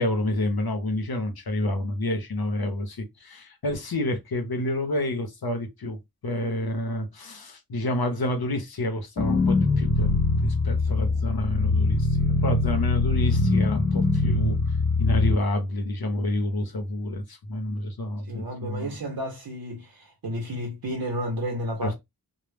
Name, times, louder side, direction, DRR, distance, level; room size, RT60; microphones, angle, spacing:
voice 1, 0.0-14.6 15.0-18.9 21.8-21.9, left 1 dB, 80° left, 0.7 m, -29 dB
sound 1, 9.2-15.3, left 3 dB, 30° left, 0.3 m, -23 dB
voice 2, 11.0-11.4 18.3-21.9, equal, 70° right, 0.6 m, -32 dB
2.1 x 2.1 x 3.2 m
wide cardioid pair, 40°, 36 cm